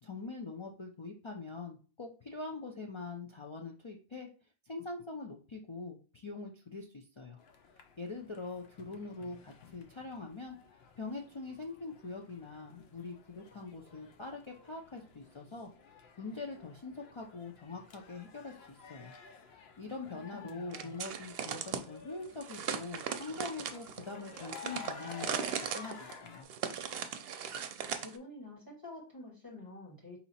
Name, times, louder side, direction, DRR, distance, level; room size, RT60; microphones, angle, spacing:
voice 1, 0.0-4.3 4.7-7.4 8.0-10.6 11.0-15.7 16.2-19.1 19.5-26.5, left 3 dB, 40° left, 0 dB, 0.4 m, -43 dB
sound 1, 7.4-26.4, left 5 dB, 75° left, 0.9 m, -53 dB
voice 2, 20.3-20.9 27.9-30.2, left 2 dB, 20° left, -2 dB, 1.6 m, -48 dB
sound 2, 20.7-21.8 22.4-28.2, right 8 dB, 70° right, 0.7 m, -38 dB
4.3 x 2.8 x 4.1 m, 0.36 s
omnidirectional pair, 1.1 m